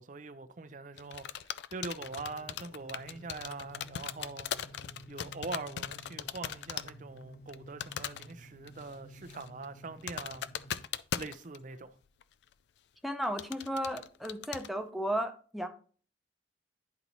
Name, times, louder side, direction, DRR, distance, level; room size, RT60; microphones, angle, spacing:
voice 1, 0.0-4.5 5.1-10.4 11.1-12.0, right 3 dB, 45° right, 0.6 m, -43 dB
sound 1, 1.0-6.9 7.2-7.5 7.8-8.3 8.7-8.9 9.2-11.8 12.2-12.3 13.2-14.7, left 9 dB, 70° left, 0.3 m, -39 dB
sound 2, 2.0-10.8, equal, 50° left, 1.2 m, -53 dB
voice 2, 13.0-15.7, equal, ahead, 0.7 m, -34 dB
10.5 x 4.0 x 3.0 m
head